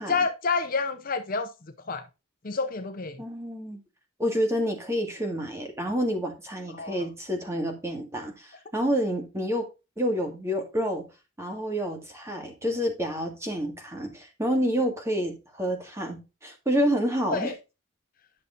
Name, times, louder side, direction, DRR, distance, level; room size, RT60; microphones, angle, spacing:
voice 1, 0.1-1.5 1.9-2.1 2.4-3.2 6.7-7.1 17.2-17.5, left 4 dB, 40° left, 0.7 m, -28 dB
voice 2, 3.2-3.8 4.2-9.7 10.0-11.1 11.4-17.5, equal, 15° right, 1.9 m, -28 dB
10.5 x 6.6 x 2.6 m
head